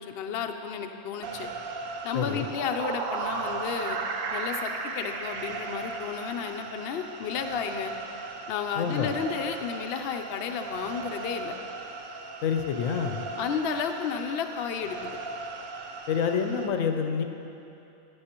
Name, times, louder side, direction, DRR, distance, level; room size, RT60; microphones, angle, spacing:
voice 1, 0.0-1.5 2.0-4.0 4.3-7.9 8.5-11.6 13.4-15.2, left 7 dB, 60° left, 5 dB, 0.7 m, -32 dB
sound 1, 1.2-16.7, right 4 dB, 55° right, 0.7 m, -39 dB
voice 2, 2.1-2.5 8.8-9.1 12.4-13.2 16.1-17.2, left 7 dB, 85° left, 6 dB, 1.0 m, -27 dB
sound 2, 2.3-6.7, right 4 dB, 75° right, 1.0 m, -34 dB
13.0 x 8.8 x 2.9 m, 2.8 s
omnidirectional pair, 1.4 m